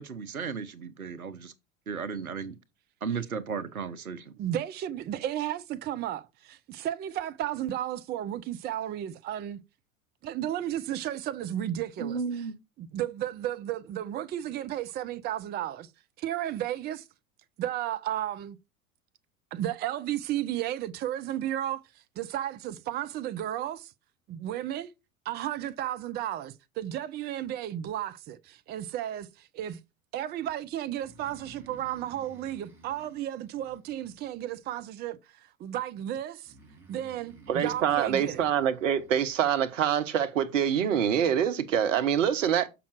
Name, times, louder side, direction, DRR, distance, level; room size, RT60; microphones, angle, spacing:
voice 1, 0.0-1.5 1.9-2.6 3.0-4.3 12.0-12.6, right 5 dB, 85° right, 0.9 m, -34 dB
voice 2, 4.4-9.6 10.2-12.2 12.8-15.9 16.2-17.1 17.6-18.6 19.5-23.9 24.3-24.9 25.2-29.8 30.1-36.5 36.9-38.4, right 12 dB, 25° right, 0.6 m, -33 dB
Breathing, 30.9-34.6 36.4-39.5, right 4 dB, 5° right, 5.1 m, -53 dB
voice 3, 37.5-42.7, right 9 dB, 65° right, 1.1 m, -25 dB
7.1 x 5.9 x 4.7 m
figure-of-eight pair, 85°, 42 cm